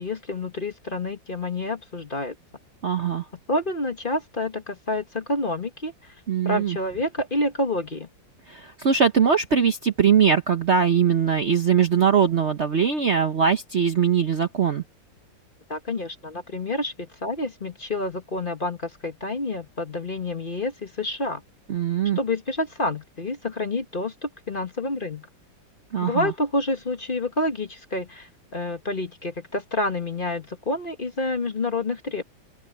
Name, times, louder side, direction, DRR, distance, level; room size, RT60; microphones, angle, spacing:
voice 1, 0.0-2.3 3.5-6.1 6.4-8.1 15.7-21.4 22.1-25.3 26.0-32.2, left 2 dB, 30° left, 1.5 m, -28 dB
voice 2, 2.8-3.2 6.3-6.8 8.5-14.8 21.7-22.2 25.9-26.3, right 7 dB, 45° right, 1.0 m, -21 dB
open air
omnidirectional pair, 2.0 m